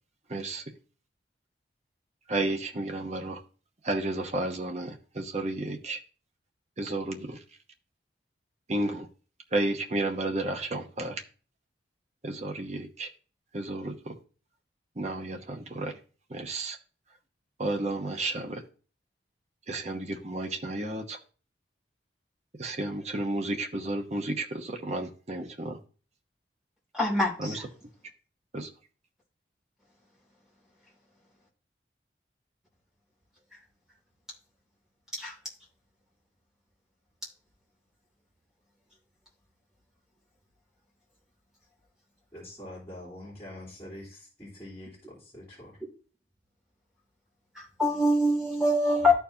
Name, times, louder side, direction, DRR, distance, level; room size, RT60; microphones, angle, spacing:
voice 1, 0.3-0.6 2.3-3.4 3.8-6.0 6.8-7.4 8.7-9.1 9.5-11.2 12.2-13.1 13.5-14.1 15.0-16.0 16.3-16.8 17.6-18.6 19.7-21.2 22.6-25.8 27.4-27.6 28.5-28.7, right 2 dB, 40° right, 0.9 m, -32 dB
voice 2, 26.9-27.5 35.2-35.3 47.5-49.1, left 1 dB, 5° right, 2.8 m, -24 dB
voice 3, 42.3-45.8, left 1 dB, 15° left, 3.0 m, -45 dB
13.0 x 4.6 x 2.8 m
head